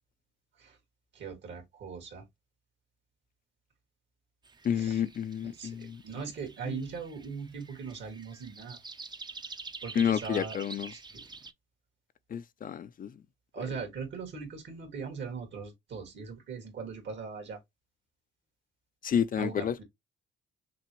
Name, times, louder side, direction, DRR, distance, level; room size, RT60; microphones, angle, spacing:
voice 1, 1.1-2.2 4.7-5.0 5.4-8.8 9.8-10.6 10.9-11.2 13.5-17.6 19.4-19.8, right 5 dB, 65° right, 1.9 m, -40 dB
sound 1, 4.4-11.5, right 4 dB, 20° right, 0.6 m, -47 dB
voice 2, 4.6-6.0 6.7-6.8 10.0-10.9 12.3-13.1 13.6-13.7 19.0-19.8, left 8 dB, 45° left, 0.5 m, -30 dB
5.9 x 2.2 x 3.0 m
cardioid pair, 90°, 20 cm